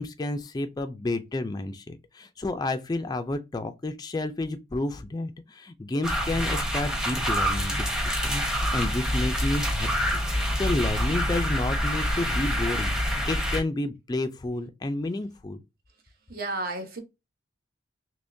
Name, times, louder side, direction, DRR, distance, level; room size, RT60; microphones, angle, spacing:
voice 1, 0.0-15.6, left 2 dB, 20° left, 0.3 m, -31 dB
sound 1, 6.0-13.6, equal, 5° right, 0.8 m, -26 dB
voice 2, 16.3-17.0, right 2 dB, 50° right, 1.0 m, -32 dB
3.5 x 2.9 x 2.6 m
head